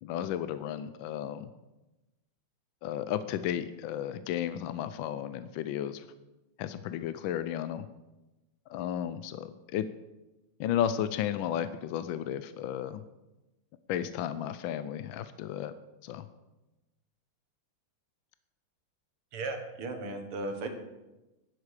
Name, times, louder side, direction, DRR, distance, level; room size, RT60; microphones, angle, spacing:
voice 1, 0.0-1.5 2.8-6.1 6.6-7.9 8.7-9.9 10.6-13.0 13.9-15.7 16.0-16.3, left 10 dB, 75° left, 12 dB, 1.2 m, -33 dB
voice 2, 19.3-20.7, right 2 dB, 80° right, 5 dB, 2.3 m, -36 dB
11.0 x 11.0 x 4.9 m, 1.0 s
omnidirectional pair, 2.4 m